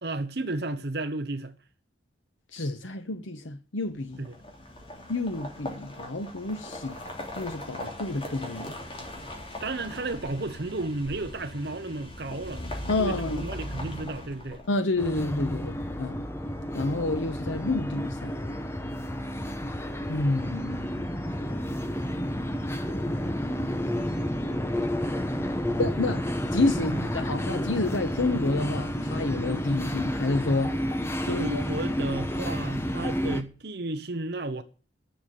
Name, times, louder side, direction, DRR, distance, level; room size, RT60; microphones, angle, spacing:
voice 1, 0.0-1.5 4.2-4.3 9.6-12.6 13.0-14.6 26.9-27.0 31.2-34.6, right 2 dB, 55° right, 1.0 m, -33 dB
voice 2, 2.5-4.3 5.1-7.0 7.4-8.7 12.9-13.5 14.7-16.2 16.7-18.4 20.1-20.8 25.8-26.2 26.5-30.8 31.2-31.6, left 2 dB, 85° left, 1.0 m, -29 dB
sound 1, 4.1-15.0, left 1 dB, 30° left, 3.0 m, -39 dB
sound 2, 15.0-33.4, equal, 15° left, 0.9 m, -30 dB
10.5 x 7.0 x 9.3 m
head